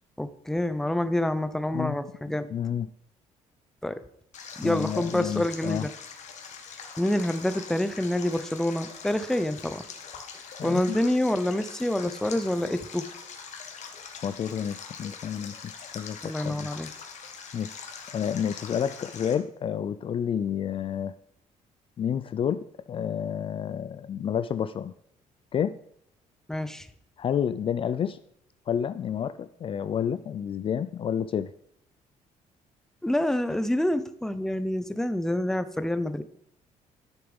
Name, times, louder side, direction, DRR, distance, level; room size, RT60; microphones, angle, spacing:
voice 1, 0.2-2.5 3.8-4.0 4.6-5.9 7.0-9.8 10.6-13.1 16.2-16.9 26.5-26.9 33.0-36.2, left 1 dB, 5° left, 12 dB, 0.6 m, -27 dB
voice 2, 1.7-2.1 2.5-2.9 4.6-5.9 10.6-11.0 14.2-16.7 17.5-17.7 18.1-21.1 22.0-24.9 25.5-25.8 27.2-28.2 28.7-31.5, left 8 dB, 40° left, 14 dB, 0.4 m, -30 dB
Stream, 4.3-19.3, left 6 dB, 60° left, 1.7 m, -43 dB
11.5 x 6.8 x 5.3 m, 0.71 s
cardioid pair, 120°, 14 cm